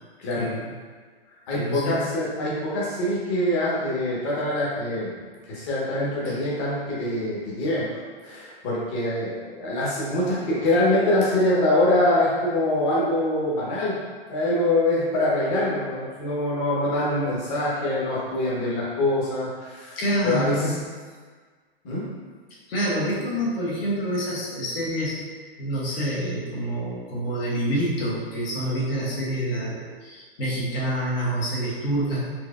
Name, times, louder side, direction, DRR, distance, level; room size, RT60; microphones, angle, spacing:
voice 1, 0.3-0.7 1.5-2.1 6.3-6.4 20.0-20.8 22.7-25.2 25.6-32.2, equal, 65° left, -5 dB, 1.2 m, -27 dB
voice 2, 1.5-5.1 5.5-7.9 8.2-14.0 14.3-20.0 20.2-20.5 21.8-22.1, left 1 dB, 30° left, -6 dB, 1.0 m, -24 dB
4.4 x 2.5 x 2.4 m, 1.5 s
hypercardioid pair, 150°, 31 cm